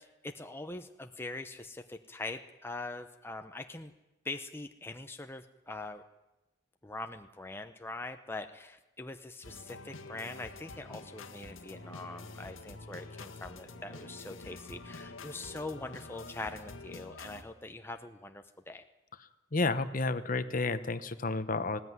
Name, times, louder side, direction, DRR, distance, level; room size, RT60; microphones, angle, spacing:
voice 1, 0.2-3.9 4.2-6.0 6.8-18.8, left 2 dB, 10° left, 6 dB, 0.7 m, -43 dB
sound 1, 9.4-17.4, left 3 dB, 90° left, 1.6 m, -47 dB
voice 2, 19.5-21.8, left 3 dB, 45° left, 12 dB, 1.0 m, -31 dB
19.5 x 17.0 x 9.5 m, 1.0 s
head